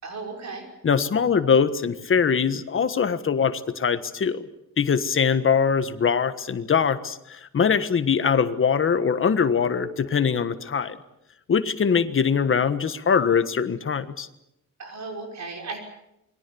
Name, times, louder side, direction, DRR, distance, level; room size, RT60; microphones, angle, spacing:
voice 1, 0.0-0.6 14.8-15.8, right 3 dB, 60° right, 3 dB, 5.7 m, -35 dB
voice 2, 0.8-4.4 4.8-11.0 11.5-14.3, left 6 dB, 40° left, 11 dB, 1.5 m, -22 dB
28.0 x 22.5 x 7.1 m, 0.84 s
wide cardioid pair, 175°, 31 cm